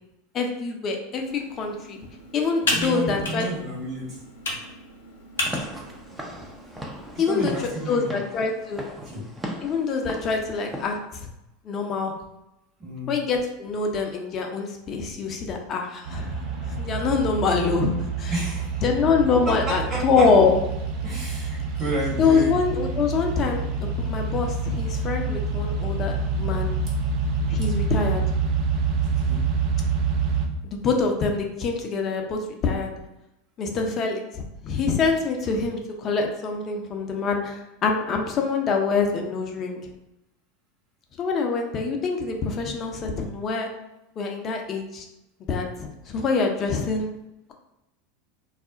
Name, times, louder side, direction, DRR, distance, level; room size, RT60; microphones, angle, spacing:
voice 1, 0.3-2.0 2.3-3.5 7.2-8.8 9.6-11.3 11.6-12.1 13.1-16.4 16.6-17.9 18.2-18.3 18.8-20.5 22.2-26.8 27.5-28.2 30.6-32.9 33.6-39.8 41.2-43.7 44.2-45.1 45.5-47.1, left 5 dB, 40° left, 3 dB, 0.5 m, -25 dB
Computer keyboard, 1.2-8.0, left 2 dB, 80° left, 0.6 m, -34 dB
voice 2, 2.6-4.2 7.3-8.2 9.0-9.3 12.8-13.2 18.3-18.8 19.5-19.6 19.9-20.2 21.0-22.5 29.1-29.5, right 1 dB, 25° right, -7 dB, 1.1 m, -31 dB
Walk footsteps / Siren, 5.4-11.0, equal, 10° right, 0.5 m, -38 dB
sound 1, 16.0-30.5, right 4 dB, 60° right, 0.6 m, -27 dB
2.4 x 2.0 x 3.7 m, 0.91 s
hypercardioid pair, 85°, 0 cm